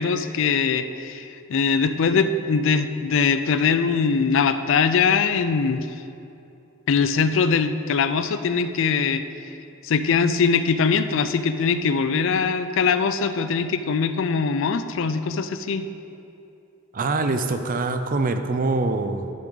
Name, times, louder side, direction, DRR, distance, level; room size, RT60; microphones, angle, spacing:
voice 1, 0.0-5.9 6.9-9.2 9.8-15.9, left 5 dB, 65° left, 11 dB, 0.4 m, -22 dB
voice 2, 16.9-19.3, right 3 dB, 40° right, 7 dB, 0.5 m, -24 dB
11.0 x 7.1 x 3.9 m, 2.7 s
head